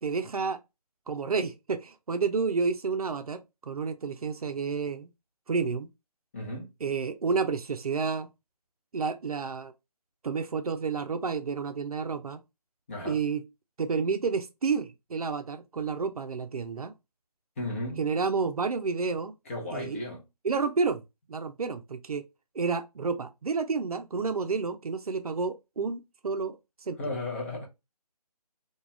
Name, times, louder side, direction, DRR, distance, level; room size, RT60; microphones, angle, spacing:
voice 1, 0.0-0.6 1.1-5.1 5.5-5.9 6.8-8.3 8.9-9.7 10.2-12.4 13.1-13.4 13.8-16.9 18.0-19.3 19.7-20.0 20.4-21.0 21.3-22.2 22.5-26.6 26.9-27.0, right 5 dB, 65° right, 0.5 m, -30 dB
voice 2, 6.3-6.7 12.9-13.2 17.6-18.0 19.4-20.2 27.0-27.7, left 2 dB, 20° left, 0.7 m, -34 dB
2.4 x 2.2 x 3.0 m
figure-of-eight pair, 155°, 20 cm